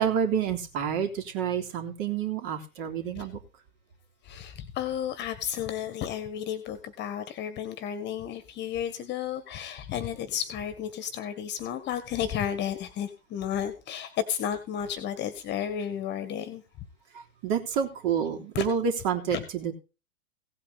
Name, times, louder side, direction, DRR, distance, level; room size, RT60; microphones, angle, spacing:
voice 1, 0.0-3.4 17.4-19.7, right 7 dB, 35° right, 5 dB, 3.4 m, -28 dB
voice 2, 4.2-16.6 18.5-18.7 19.3-19.4, left 9 dB, 25° left, 11 dB, 1.8 m, -32 dB
17.0 x 8.7 x 4.2 m, 0.31 s
figure-of-eight pair, 120°, 44 cm